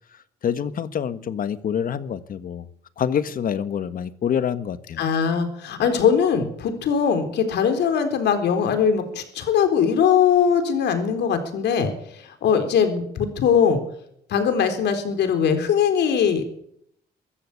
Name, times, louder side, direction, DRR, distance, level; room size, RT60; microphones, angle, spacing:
voice 1, 0.4-2.6 3.0-5.0, left 8 dB, 50° left, 1.4 m, -26 dB
voice 2, 5.0-13.8 14.3-16.5, left 7 dB, 75° left, 4.0 m, -21 dB
23.0 x 14.0 x 8.4 m
cardioid pair, 135°, 18 cm